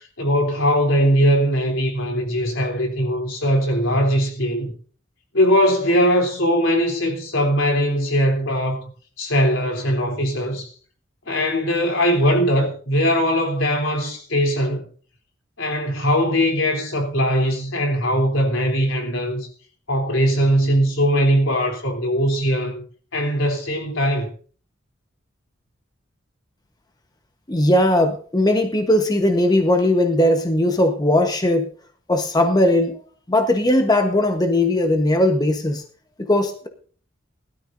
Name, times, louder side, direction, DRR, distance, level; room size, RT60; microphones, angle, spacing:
voice 1, 0.2-4.7 5.3-8.9 9.2-10.7 11.3-14.9 15.6-19.5 19.9-22.8 23.1-24.3, equal, 85° left, 3.5 m, -20 dB
voice 2, 27.5-31.7 32.1-33.0 33.3-35.8 36.2-36.7, left 1 dB, 20° left, 1.1 m, -18 dB
20.5 x 12.5 x 2.7 m
head